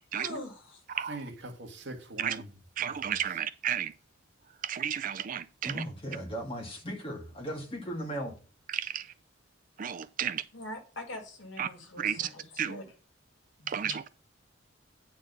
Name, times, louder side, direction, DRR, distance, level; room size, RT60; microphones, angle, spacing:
voice 1, 0.2-0.8 10.5-12.8 13.6-13.7, left 1 dB, 70° left, 2.1 m, -43 dB
voice 2, 1.1-3.4, right 2 dB, 60° right, 1.8 m, -43 dB
voice 3, 2.8-3.9 4.6-5.8 8.7-9.1 9.8-10.4 11.6-11.7 12.0-12.3 12.6-12.8 13.7-14.0, right 9 dB, 40° right, 0.3 m, -32 dB
voice 4, 5.6-8.3, equal, 25° left, 2.0 m, -37 dB
9.2 x 4.5 x 5.3 m
head